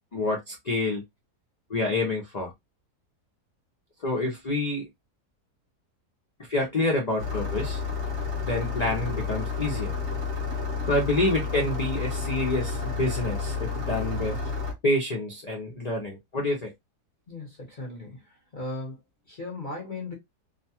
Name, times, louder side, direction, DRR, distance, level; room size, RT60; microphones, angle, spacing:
voice 1, 0.1-1.0 1.7-2.5 4.0-4.9 6.4-7.8 8.4-9.9 10.9-14.4 14.8-16.7, left 2 dB, 60° left, 0.4 m, -27 dB
Engine starting, 7.2-14.7, left 5 dB, 55° right, 0.9 m, -30 dB
voice 2, 17.3-19.0 19.3-20.1, left 2 dB, 40° left, 0.9 m, -37 dB
2.7 x 2.2 x 2.7 m
omnidirectional pair, 1.7 m